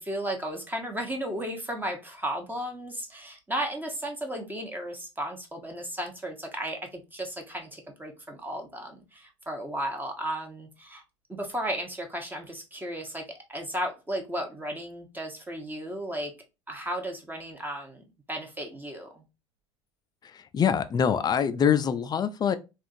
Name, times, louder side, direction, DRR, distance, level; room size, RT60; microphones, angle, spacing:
voice 1, 0.0-11.0 11.3-13.2 13.5-16.3 16.7-19.2, right 1 dB, 15° right, 0.9 m, -34 dB
voice 2, 20.2-22.6, left 8 dB, 25° left, 0.4 m, -25 dB
3.5 x 2.4 x 2.6 m
hypercardioid pair, 75°, 15 cm